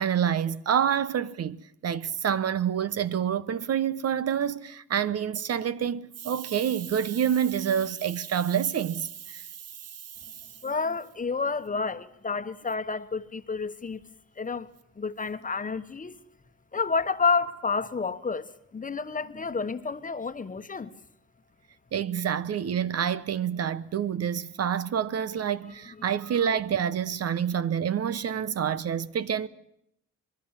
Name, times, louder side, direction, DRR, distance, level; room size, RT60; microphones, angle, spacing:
voice 1, 0.0-1.6 1.8-9.5 21.9-29.5, right 8 dB, 55° right, 1.0 m, -27 dB
voice 2, 10.6-14.0 14.4-14.7 15.0-16.2 16.7-20.9, left 4 dB, 25° left, 1.3 m, -30 dB
25.0 x 21.5 x 7.4 m
cardioid pair, 90°, 30 cm